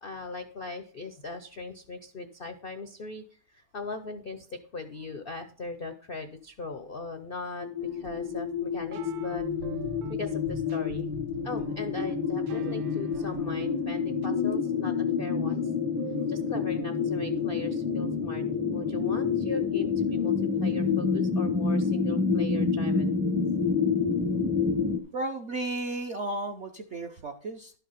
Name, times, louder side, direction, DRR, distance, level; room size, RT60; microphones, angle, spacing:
voice 1, 0.0-9.4 10.1-11.1 11.4-15.7 16.3-18.4 18.7-20.3 20.6-23.2, left 3 dB, 80° left, 8 dB, 0.5 m, -39 dB
sound 1, 7.6-25.0, left 5 dB, 25° right, 0.4 m, -28 dB
sound 2, 7.8-14.3, right 6 dB, 80° right, 1.5 m, -45 dB
voice 2, 25.1-27.7, right 2 dB, 65° right, 4 dB, 0.7 m, -34 dB
12.0 x 5.8 x 5.7 m, 0.43 s
omnidirectional pair, 2.1 m